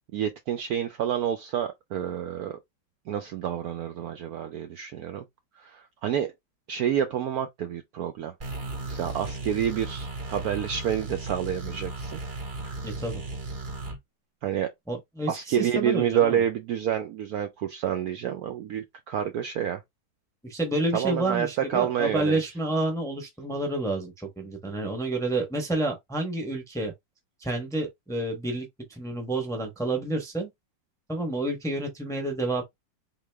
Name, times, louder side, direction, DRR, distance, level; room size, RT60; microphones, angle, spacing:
voice 1, 0.1-2.6 3.1-5.2 5.6-6.3 6.7-8.3 8.9-12.2 12.6-12.8 14.4-14.7 15.3-19.8 20.9-22.4, right 9 dB, 75° right, 0.9 m, -28 dB
sound 1, 8.4-14.0, right 2 dB, 40° right, 0.7 m, -35 dB
voice 2, 12.8-13.2 14.9-16.4 20.4-26.9 27.4-30.5 31.1-32.6, right 2 dB, 5° left, 0.7 m, -29 dB
4.0 x 3.0 x 3.3 m
omnidirectional pair, 2.0 m